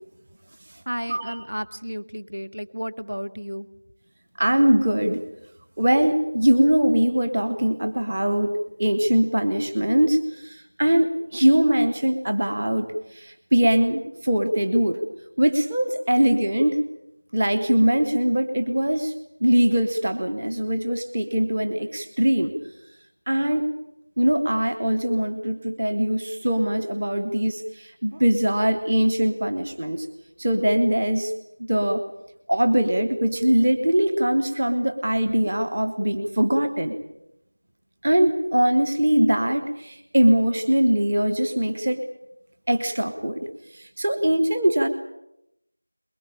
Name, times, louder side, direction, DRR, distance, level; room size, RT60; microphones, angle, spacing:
voice 1, 0.9-3.7, equal, 70° right, 8 dB, 1.8 m, -32 dB
voice 2, 4.4-5.2 5.8-15.0 15.4-16.8 17.3-19.1 19.4-22.5 23.3-23.7 24.2-30.1 30.4-31.3 31.7-32.0 32.5-36.9 38.0-42.0 42.7-43.5 43.7-44.9, right 1 dB, 20° right, 9 dB, 1.0 m, -22 dB
23.0 x 22.0 x 8.8 m, 0.82 s
figure-of-eight pair, 175°, 0 cm